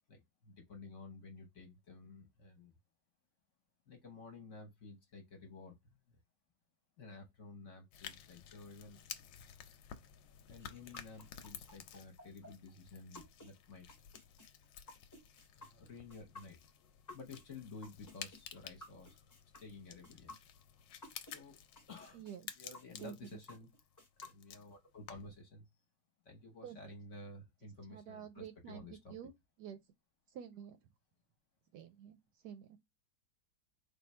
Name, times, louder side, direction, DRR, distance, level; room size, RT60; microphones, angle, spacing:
voice 1, 0.1-2.8 3.9-6.2 7.0-9.0 10.5-13.9 15.6-16.6 17.1-19.2 19.6-20.4 21.2-21.6 21.9-22.2 22.6-23.7 24.2-25.7 26.2-29.1, left 3 dB, 50° left, 1.1 m, -53 dB
sound 1, 7.9-25.4, left 9 dB, 90° left, 1.3 m, -53 dB
sound 2, 10.5-21.4 21.7-24.7, left 2 dB, 15° left, 0.7 m, -55 dB
voice 2, 22.9-23.4 26.6-26.9 27.9-29.3 29.6-29.8 30.3-30.8 31.7-32.2 32.4-32.8, right 9 dB, 75° right, 1.1 m, -49 dB
3.5 x 2.5 x 4.2 m
omnidirectional pair, 2.0 m